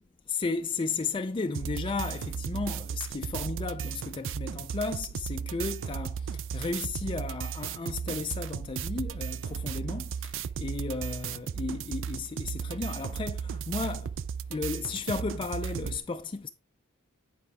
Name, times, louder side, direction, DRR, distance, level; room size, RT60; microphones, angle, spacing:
voice 1, 0.3-14.2 14.5-16.5, left 4 dB, 25° left, 0.4 m, -34 dB
sound 1, 1.5-16.0, right 7 dB, 60° right, 0.4 m, -35 dB
9.8 x 5.0 x 3.4 m
head